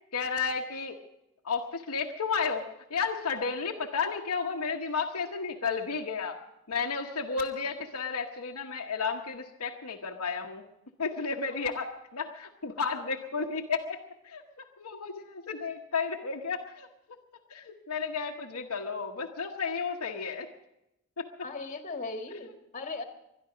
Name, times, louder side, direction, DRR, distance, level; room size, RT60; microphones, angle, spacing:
voice 1, 0.1-1.0 1.4-6.4 6.7-10.6 11.0-16.9 17.5-20.5 21.2-21.3, left 5 dB, 75° left, 0 dB, 1.1 m, -33 dB
voice 2, 21.4-23.0, left 3 dB, 35° left, 6 dB, 1.6 m, -38 dB
21.0 x 12.5 x 5.1 m, 0.87 s
head